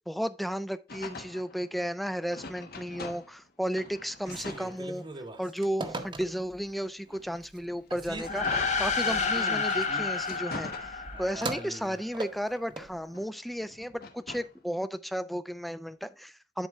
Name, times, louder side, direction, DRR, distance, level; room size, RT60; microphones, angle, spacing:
voice 1, 0.1-5.1 5.4-16.7, equal, ahead, 0.4 m, -34 dB
sound 1, 0.9-3.5 3.7-5.4 6.0-9.4 9.9-11.5 11.9-14.6, left 3 dB, 60° left, 1.1 m, -45 dB
Telephone, 4.2-6.7 7.1-7.6 7.9-12.9, right 2 dB, 30° right, 0.8 m, -40 dB
sound 2, 8.2-11.9, left 4 dB, 45° left, 0.8 m, -30 dB
10.5 x 4.3 x 3.4 m
head